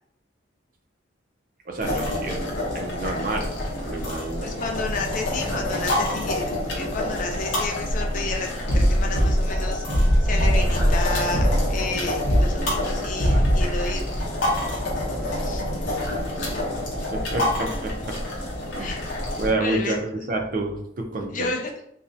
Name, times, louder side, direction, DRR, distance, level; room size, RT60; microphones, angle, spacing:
voice 1, 1.7-2.4 2.7-4.7 12.6-12.8 13.3-13.8 14.5-14.6 15.1-15.3 16.6-16.7 17.1-18.2 18.7-19.1 19.4-21.5, right 2 dB, 45° right, 3 dB, 0.4 m, -29 dB
sound 1, 1.8-19.5, left 1 dB, 75° left, 0.7 m, -28 dB
voice 2, 4.4-14.1 15.4-15.6 18.8-19.0 19.6-20.0 21.3-21.7, left 3 dB, 40° left, 2 dB, 0.4 m, -31 dB
sound 2, 7.9-8.3 8.7-14.3 14.6-17.5, equal, 65° right, 0.9 m, -22 dB
2.4 x 2.0 x 2.6 m, 0.73 s
head